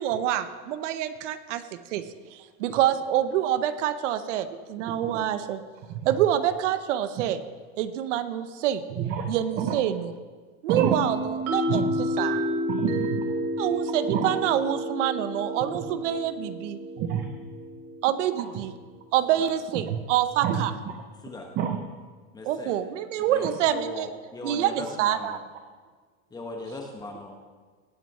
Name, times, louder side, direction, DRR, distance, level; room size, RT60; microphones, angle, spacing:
voice 1, 0.0-1.6 1.9-2.0 2.3-5.6 6.0-7.4 7.8-8.8 9.3-10.2 10.6-12.4 13.6-16.8 18.0-18.7 19.1-20.8 22.4-24.1 24.4-25.4, right 11 dB, 60° right, 12 dB, 0.8 m, -26 dB
voice 2, 8.9-9.8 10.7-11.0 11.7-12.0 12.7-13.3 14.1-14.3 17.0-17.3 18.4-18.6 19.7-20.0 20.4-21.0 21.5-21.8, right 8 dB, 25° right, 6 dB, 0.6 m, -29 dB
sound 1, 10.8-18.4, equal, 80° right, 3.2 m, -30 dB
voice 3, 22.3-22.7 23.1-25.4 26.3-27.4, left 2 dB, 10° left, 3 dB, 1.0 m, -39 dB
18.0 x 6.2 x 5.5 m, 1.5 s
supercardioid pair, 160°, 40 cm